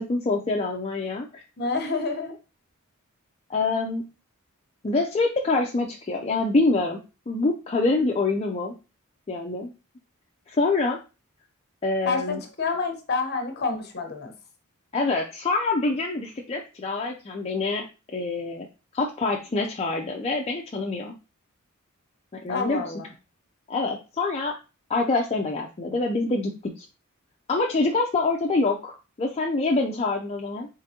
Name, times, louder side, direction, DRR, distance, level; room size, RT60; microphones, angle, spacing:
voice 1, 0.0-1.4 3.5-4.0 4.8-7.0 7.3-8.7 9.3-9.7 10.5-11.0 11.8-12.4 14.9-18.7 18.9-21.1 22.3-22.8 23.7-24.5 24.9-26.9 27.5-30.7, left 3 dB, 30° left, 0 dB, 0.4 m, -26 dB
voice 2, 1.6-2.3 12.1-14.3 22.5-23.0, left 4 dB, 50° left, 6 dB, 0.9 m, -28 dB
4.3 x 3.8 x 2.7 m, 0.31 s
head